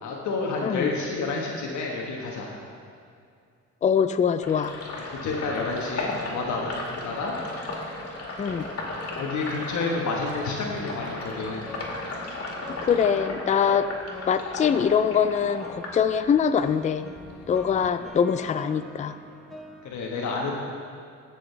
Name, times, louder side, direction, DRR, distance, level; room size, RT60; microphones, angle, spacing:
voice 1, 0.0-2.5 5.0-7.4 9.2-11.7 19.8-20.5, left 3 dB, 70° left, -1 dB, 1.3 m, -30 dB
voice 2, 3.8-4.7 8.4-8.7 12.8-13.9 14.3-17.0 17.5-19.1, left 7 dB, 25° left, 11 dB, 0.4 m, -23 dB
Sink (filling or washing), 4.4-16.7 17.0-18.5, left 2 dB, 50° left, 2.3 m, -35 dB
sound 1, 11.0-19.9, left 1 dB, ahead, 1.1 m, -45 dB
17.0 x 6.4 x 3.3 m, 2.3 s
cardioid pair, 90°, 30 cm